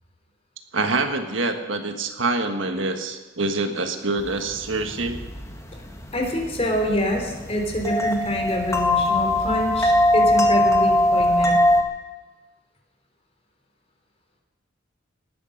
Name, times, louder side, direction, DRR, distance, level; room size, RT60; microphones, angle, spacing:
voice 1, 0.7-5.2, right 3 dB, 70° right, 6 dB, 1.6 m, -25 dB
sound 1, 4.2-11.8, left 1 dB, 15° left, 1.6 m, -21 dB
voice 2, 6.1-11.6, equal, 30° left, 2 dB, 3.4 m, -26 dB
19.0 x 11.5 x 6.5 m, 1.2 s
head